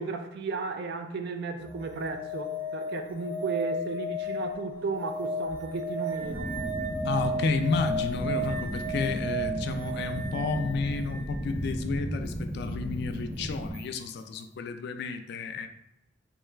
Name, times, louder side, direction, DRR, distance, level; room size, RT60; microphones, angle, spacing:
voice 1, 0.0-6.6, right 4 dB, 60° right, 0.4 m, -34 dB
sound 1, 1.6-11.4 13.7-13.8, equal, 80° right, 1.1 m, -34 dB
sound 2, 6.2-13.7, equal, ahead, 0.5 m, -35 dB
voice 2, 7.0-15.7, left 4 dB, 60° left, 0.3 m, -31 dB
3.6 x 2.3 x 3.2 m
head